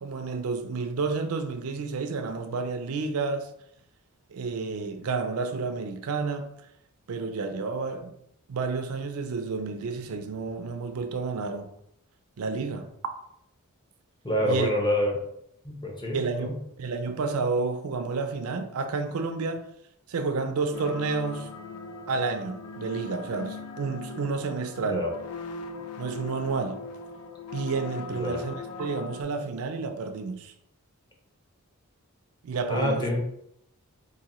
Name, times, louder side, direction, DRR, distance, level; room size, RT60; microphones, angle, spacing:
voice 1, 0.0-3.5 4.3-6.5 7.1-8.2 8.5-11.7 12.4-12.9 14.5-14.7 16.1-16.5 16.8-19.6 20.1-21.5 22.1-25.0 26.0-26.8 27.5-30.5 32.4-33.1, right 4 dB, 70° right, 0.4 m, -30 dB
voice 2, 14.2-15.2 15.6-16.6 24.8-25.1 28.1-28.4 32.7-33.2, equal, 20° left, 0.7 m, -27 dB
sound 1, 20.7-29.2, left 4 dB, 85° left, 0.4 m, -40 dB
3.9 x 2.6 x 2.9 m
head